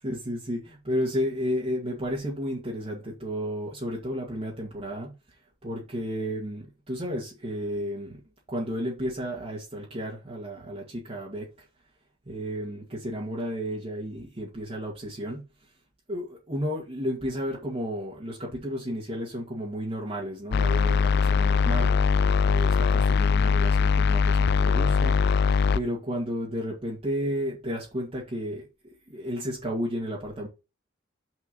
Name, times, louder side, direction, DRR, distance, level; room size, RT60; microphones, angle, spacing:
voice 1, 0.0-5.1 5.6-8.2 8.5-11.7 12.3-15.5 16.1-22.0 22.4-25.2 25.7-28.7 29.1-30.5, equal, 30° right, 2.1 m, -32 dB
sound 1, 20.5-25.8, left 5 dB, 55° left, 0.4 m, -21 dB
6.3 x 5.2 x 5.5 m
head